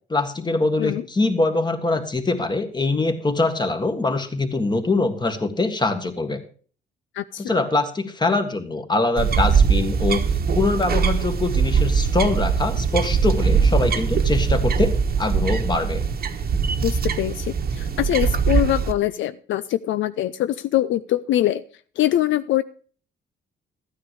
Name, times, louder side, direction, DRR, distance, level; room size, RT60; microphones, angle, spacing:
voice 1, 0.1-6.4 7.4-10.2 10.5-16.0, left 3 dB, 20° left, 7 dB, 1.7 m, -23 dB
voice 2, 7.2-7.6 16.8-21.6 22.0-22.6, left 13 dB, 75° left, 14 dB, 0.5 m, -23 dB
sound 1, 9.2-18.9, right 6 dB, 50° right, 1.2 m, -21 dB
13.5 x 9.4 x 4.8 m, 0.42 s
cardioid pair, 90°, 20 cm